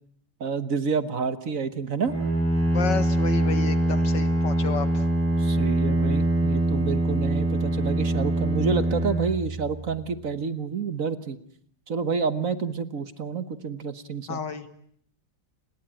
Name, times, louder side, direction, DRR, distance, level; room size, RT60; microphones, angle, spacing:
voice 1, 0.4-2.1 5.4-11.4 11.9-14.4, right 5 dB, 50° right, 12 dB, 1.6 m, -29 dB
Bowed string instrument, 2.0-10.0, right 1 dB, 5° right, 7.8 m, -24 dB
voice 2, 2.7-5.0 14.3-14.7, left 6 dB, 80° left, 10 dB, 2.5 m, -31 dB
29.5 x 21.0 x 9.0 m, 0.65 s
omnidirectional pair, 1.9 m